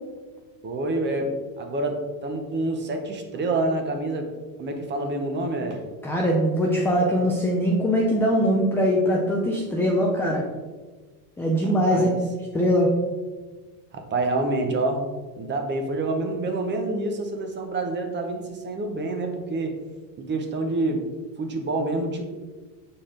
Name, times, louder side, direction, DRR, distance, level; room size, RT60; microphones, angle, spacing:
voice 1, 0.6-4.3 4.6-5.8 11.6-12.2 13.9-15.0 15.4-19.8 20.2-21.0 21.4-22.2, right 2 dB, 25° right, 5 dB, 0.8 m, -27 dB
voice 2, 6.0-10.4 11.4-12.2 12.5-12.9, equal, 5° left, -2 dB, 0.4 m, -22 dB
7.0 x 4.2 x 3.7 m, 1.3 s
supercardioid pair, 130°, 48 cm